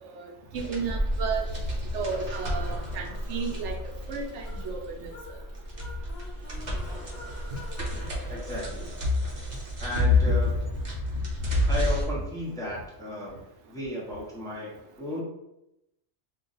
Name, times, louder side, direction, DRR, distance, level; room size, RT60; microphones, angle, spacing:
voice 1, 0.0-1.5 1.9-3.7 4.1-5.1 10.3-10.4, right 5 dB, 70° right, 1 dB, 0.9 m, -33 dB
sound 1, 0.6-12.0, left 2 dB, 45° right, 0.7 m, -29 dB
sound 2, 4.4-9.1, left 2 dB, 55° left, 1.0 m, -48 dB
voice 2, 8.3-8.9 9.8-10.5 11.7-13.3 13.7-15.2, left 1 dB, 5° left, -5 dB, 0.6 m, -34 dB
2.5 x 2.3 x 3.9 m, 0.87 s
omnidirectional pair, 1.3 m